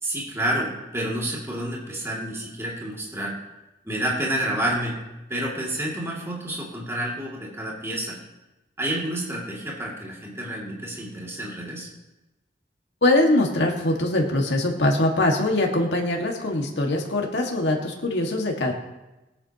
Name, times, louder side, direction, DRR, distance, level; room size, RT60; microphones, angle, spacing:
voice 1, 0.0-3.3 3.8-5.0 5.3-8.2 8.8-11.9, right 1 dB, 15° right, -4 dB, 2.4 m, -29 dB
voice 2, 13.0-18.7, left 1 dB, 85° left, 0 dB, 1.8 m, -22 dB
22.0 x 8.4 x 2.9 m, 1.0 s
head